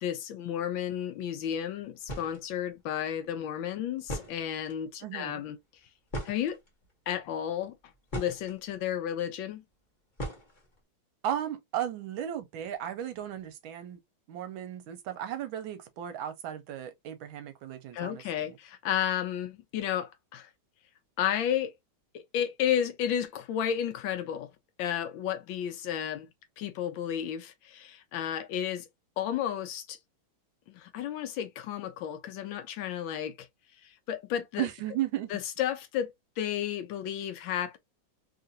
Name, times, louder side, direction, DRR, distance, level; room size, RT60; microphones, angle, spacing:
voice 1, 0.0-5.6 6.2-6.6 7.1-7.7 8.1-9.6 17.9-20.5 21.2-21.7 22.1-24.5 24.8-26.3 26.6-28.9 29.2-30.0 30.7-33.5 33.8-34.7 35.3-37.8, left 10 dB, 75° left, 1.2 m, -32 dB
sound 1, 1.7-1.8 2.0-2.4 3.6-3.7 4.0-4.8 6.1-6.9 7.6-8.6 10.2-10.8, equal, 30° left, 1.0 m, -38 dB
voice 2, 5.0-5.4 11.2-14.0 14.3-18.6 34.6-35.3, right 11 dB, 75° right, 1.4 m, -35 dB
3.5 x 2.4 x 2.6 m
omnidirectional pair, 2.3 m